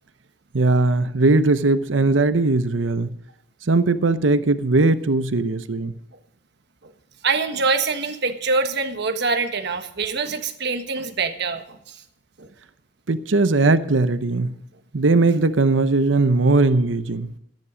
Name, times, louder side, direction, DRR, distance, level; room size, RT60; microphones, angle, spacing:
voice 1, 0.5-3.2 3.7-5.9 13.1-14.5 14.9-17.3, right 3 dB, 80° right, 12 dB, 0.8 m, -19 dB
voice 2, 7.2-12.0 12.4-12.5, right 4 dB, 60° right, 7 dB, 1.5 m, -24 dB
14.0 x 10.5 x 5.0 m, 0.77 s
head